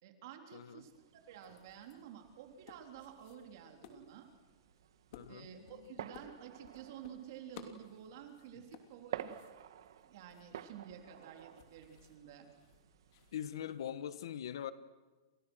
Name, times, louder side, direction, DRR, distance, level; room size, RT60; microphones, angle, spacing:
voice 1, 0.0-4.3 5.3-9.4 10.0-12.5, right 9 dB, 50° right, 4 dB, 3.6 m, -51 dB
sound 1, 0.8-13.7, right 10 dB, 75° right, 1.7 m, -52 dB
sound 2, 1.3-13.8, left 7 dB, 40° left, 3.0 m, -59 dB
voice 2, 5.1-6.1 13.3-14.7, left 10 dB, 75° left, 13 dB, 1.5 m, -43 dB
29.5 x 27.5 x 6.4 m, 1.3 s
supercardioid pair, 175°, 2 cm